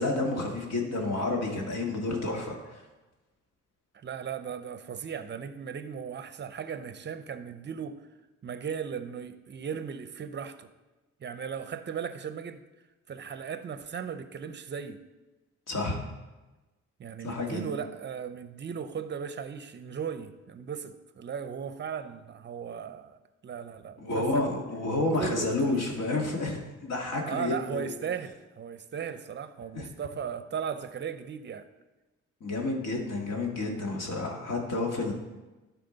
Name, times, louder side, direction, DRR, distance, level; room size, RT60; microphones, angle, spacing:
voice 1, 0.0-2.8 15.7-16.0 17.2-17.7 24.0-27.9 29.7-29.9 32.4-35.1, left 2 dB, 60° left, 0 dB, 1.9 m, -30 dB
voice 2, 3.9-8.0 8.4-10.7 11.2-12.6 13.1-15.0 17.0-24.6 25.1-25.7 27.3-31.7, right 7 dB, 35° right, 11 dB, 0.6 m, -37 dB
11.5 x 4.6 x 4.0 m, 1.1 s
cardioid pair, 90°, 30 cm